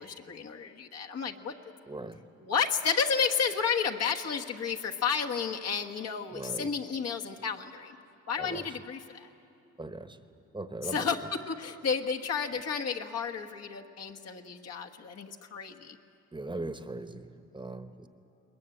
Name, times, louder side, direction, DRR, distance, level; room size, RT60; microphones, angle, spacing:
voice 1, 0.0-1.5 2.4-8.0 8.3-9.3 10.8-16.0, left 6 dB, 55° left, 2 dB, 1.4 m, -32 dB
voice 2, 1.9-2.2 6.3-6.7 8.4-8.7 9.8-10.2 10.5-11.1 16.3-18.1, right 2 dB, 15° right, 9 dB, 1.1 m, -39 dB
21.5 x 21.0 x 9.1 m, 2.8 s
cardioid pair, 90°, 30 cm